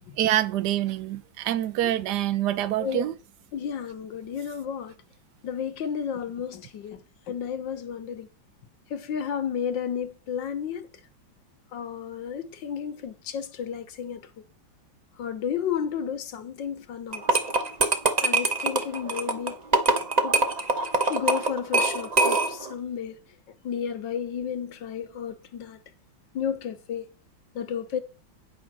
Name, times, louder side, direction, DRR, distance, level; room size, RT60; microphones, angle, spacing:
voice 1, 0.2-3.1, right 13 dB, 65° right, 1.2 m, -26 dB
voice 2, 3.5-4.9 5.4-7.0 7.3-8.3 8.9-10.9 11.7-14.2 15.2-17.4 18.2-19.6 20.2-20.4 21.1-23.2 23.6-25.8 26.3-27.0 27.5-28.0, left 8 dB, 70° left, 1.7 m, -32 dB
sound 1, 17.1-22.7, right 3 dB, 35° right, 0.7 m, -24 dB
9.7 x 6.2 x 6.2 m
omnidirectional pair, 2.1 m